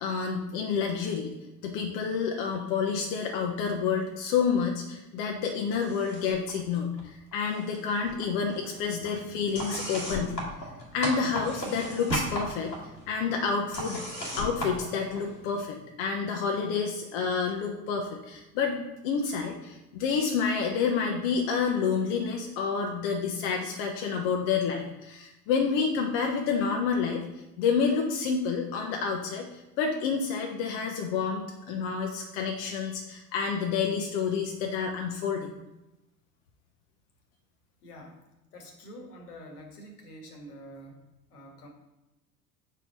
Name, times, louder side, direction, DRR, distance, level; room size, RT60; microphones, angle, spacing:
voice 1, 0.0-1.3 1.6-10.4 10.9-12.7 13.1-14.0 14.4-27.2 27.6-35.6, left 6 dB, 45° left, 2 dB, 0.8 m, -29 dB
sound 1, 5.7-6.5 6.8-7.8 8.1-15.6, equal, 90° left, 1.5 m, -36 dB
voice 2, 23.9-24.3 37.8-38.2 38.5-41.0 41.3-41.7, equal, 70° left, 2 dB, 1.5 m, -47 dB
5.8 x 4.6 x 4.0 m, 0.97 s
figure-of-eight pair, 70°, 48 cm